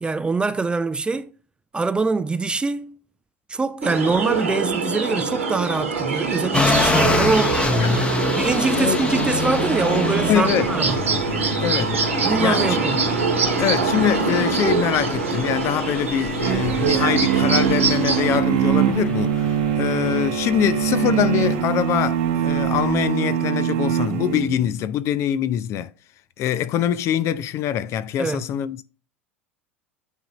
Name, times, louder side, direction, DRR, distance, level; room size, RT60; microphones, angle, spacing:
voice 1, 0.0-1.3 1.7-3.0 3.5-7.6 8.3-11.0 12.2-13.1 28.2-28.4, right 3 dB, 15° right, 0.4 m, -24 dB
sound 1, 3.8-18.4, right 4 dB, 80° right, 1.7 m, -24 dB
sound 2, 6.5-23.1, left 2 dB, 15° left, 0.9 m, -27 dB
voice 2, 10.3-10.7 11.6-12.0 12.4-12.8 13.6-25.9 26.4-28.8, left 11 dB, 40° left, 0.5 m, -23 dB
sound 3, 16.4-24.7, right 10 dB, 55° right, 1.0 m, -22 dB
9.0 x 3.8 x 3.0 m
figure-of-eight pair, 75°, 7 cm